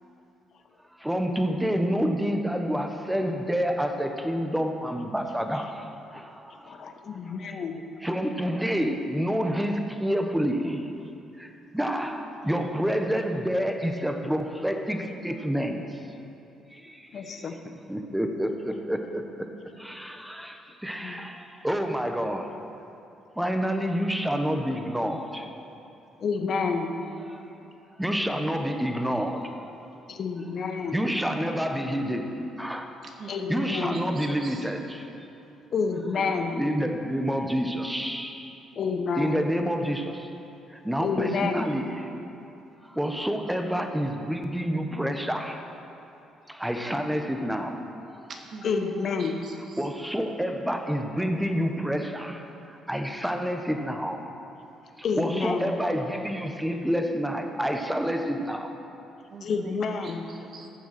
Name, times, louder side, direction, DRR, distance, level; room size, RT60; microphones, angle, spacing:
voice 1, 1.0-5.8 6.1-6.8 7.5-7.6 8.0-11.0 11.4-16.0 16.7-17.4 17.9-19.3 19.8-22.5 23.4-25.5 27.3-27.4 28.0-29.6 30.9-32.9 33.5-35.1 36.2-38.6 39.2-40.3 40.7-42.1 42.8-45.6 46.5-48.2 49.8-54.2 55.0-58.7, equal, 5° right, 5 dB, 1.3 m, -28 dB
voice 2, 6.7-7.8 17.1-17.6 21.0-21.3 26.2-27.1 30.1-31.0 33.3-34.0 35.7-36.7 38.8-39.4 41.0-41.6 48.6-49.4 55.0-55.8 59.4-60.2, left 5 dB, 55° left, 5 dB, 1.2 m, -29 dB
voice 3, 33.0-34.7 48.3-49.9 59.3-60.7, right 4 dB, 50° right, 2 dB, 1.8 m, -43 dB
15.0 x 7.1 x 6.1 m, 2.8 s
supercardioid pair, 65°, 0 cm